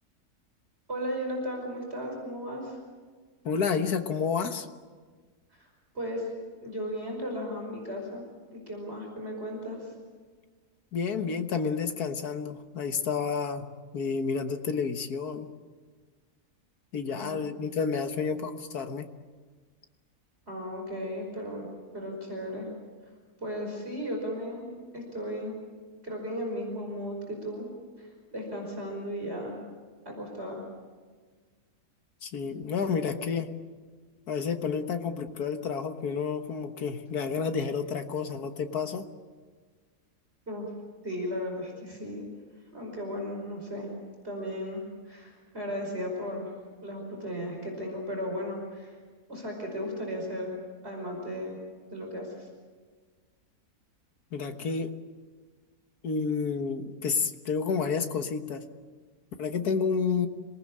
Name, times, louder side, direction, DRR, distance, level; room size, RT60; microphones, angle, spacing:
voice 1, 0.9-2.8 5.6-5.7 5.9-6.2 6.6-8.2 8.5-9.9 17.2-17.4 20.5-21.7 21.9-22.7 23.4-24.7 24.9-25.6 26.0-27.7 28.0-29.6 30.1-30.6 40.5-40.6 41.0-42.3 42.7-43.9 44.2-44.8 45.1-46.5 46.8-49.0 49.3-50.5 50.8-51.6 51.9-52.5, equal, 40° right, 0 dB, 5.6 m, -35 dB
voice 2, 3.4-4.7 10.9-13.7 13.9-15.5 16.9-19.1 32.2-33.5 34.3-39.1 54.3-54.9 56.0-58.7 59.4-60.3, left 5 dB, 75° left, 7 dB, 1.9 m, -30 dB
26.5 x 19.5 x 8.7 m, 1.5 s
omnidirectional pair, 1.6 m